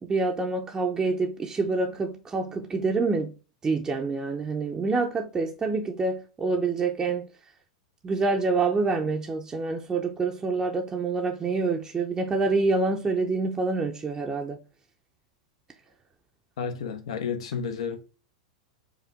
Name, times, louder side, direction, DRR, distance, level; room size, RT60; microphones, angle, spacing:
voice 1, 0.0-3.3 3.6-7.3 8.0-14.6, right 3 dB, 20° right, 0.6 m, -27 dB
voice 2, 16.6-18.0, left 6 dB, 70° left, 0.7 m, -31 dB
5.0 x 2.2 x 3.4 m
hypercardioid pair, 100°, 3 cm